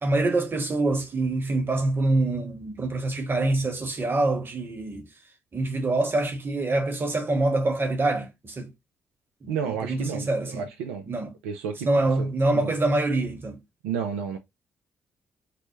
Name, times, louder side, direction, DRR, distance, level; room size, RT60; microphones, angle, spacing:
voice 1, 0.0-5.1 5.5-8.7 9.4-10.6 11.1-11.3 11.8-13.6, right 2 dB, 35° right, 1.1 m, -25 dB
voice 2, 9.5-11.1 11.4-12.7 13.8-14.4, right 7 dB, 85° right, 0.4 m, -32 dB
3.3 x 2.0 x 3.0 m
hypercardioid pair, 45°, 6 cm